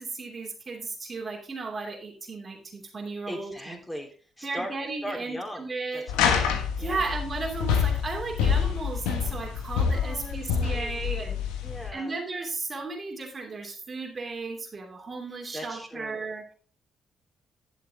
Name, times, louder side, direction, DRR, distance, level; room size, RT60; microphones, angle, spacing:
voice 1, 0.0-3.8 4.4-6.1 6.8-11.4 11.9-16.4, right 3 dB, 40° right, 1 dB, 2.8 m, -35 dB
voice 2, 3.3-4.1 4.4-4.7 5.0-6.4 6.8-7.0 9.9-11.1 11.6-12.1 15.5-16.2, equal, 10° left, 1 dB, 3.6 m, -39 dB
sound 1, 6.1-11.9, left 7 dB, 85° left, 1.2 m, -27 dB
11.0 x 7.1 x 3.6 m, 0.40 s
hypercardioid pair, 50°, 0 cm